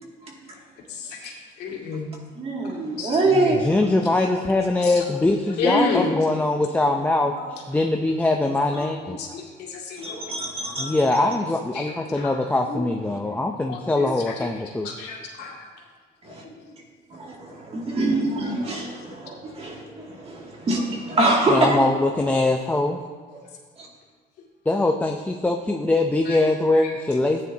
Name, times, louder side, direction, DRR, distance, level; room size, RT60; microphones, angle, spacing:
voice 1, 0.9-1.3 1.6-2.1 3.0-3.2 4.8-4.9 5.6-6.2 9.2-9.4 9.7-10.1 11.7-11.9 12.2-12.3 12.6-12.8 13.7-14.3 14.8-15.5 16.4-16.5 26.3-26.4, left 3 dB, 80° left, -2 dB, 2.3 m, -29 dB
voice 2, 2.4-3.6 8.7-8.8 10.0-11.0 16.2-16.4 17.1-21.8 23.8-23.9, right 2 dB, 35° right, -1 dB, 2.4 m, -24 dB
voice 3, 3.3-7.3 7.7-9.4 10.8-14.9 19.9-20.0 21.5-23.0 24.7-27.4, left 2 dB, 10° left, 2 dB, 0.6 m, -22 dB
14.5 x 9.5 x 2.8 m, 1.5 s
cardioid pair, 110°, 17 cm